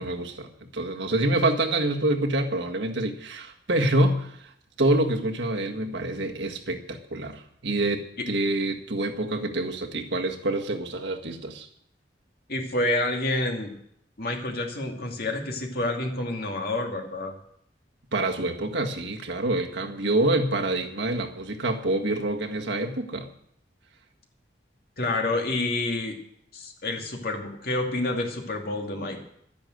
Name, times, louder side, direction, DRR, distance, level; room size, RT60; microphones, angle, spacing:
voice 1, 0.0-4.5 4.8-11.7 18.1-23.3, right 2 dB, 80° right, 3 dB, 1.7 m, -26 dB
voice 2, 12.5-13.7 14.2-17.3 25.0-26.1 26.5-29.2, left 2 dB, 55° left, 2 dB, 2.5 m, -28 dB
12.0 x 10.5 x 7.9 m, 0.71 s
head